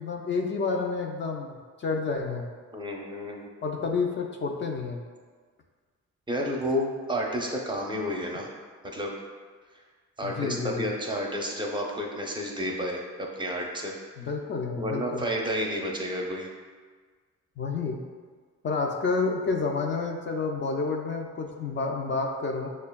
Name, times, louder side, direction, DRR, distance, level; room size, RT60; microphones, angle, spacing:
voice 1, 0.0-2.5 3.6-5.0 10.2-10.9 14.2-15.2 17.6-18.0 18.6-22.7, left 4 dB, 40° left, 1 dB, 0.4 m, -29 dB
voice 2, 2.7-3.5 6.3-8.5 8.9-9.1 10.2-13.9 14.8-16.5, equal, 15° right, -1 dB, 0.5 m, -31 dB
6.4 x 2.2 x 2.2 m, 1.5 s
cardioid pair, 90°, 30 cm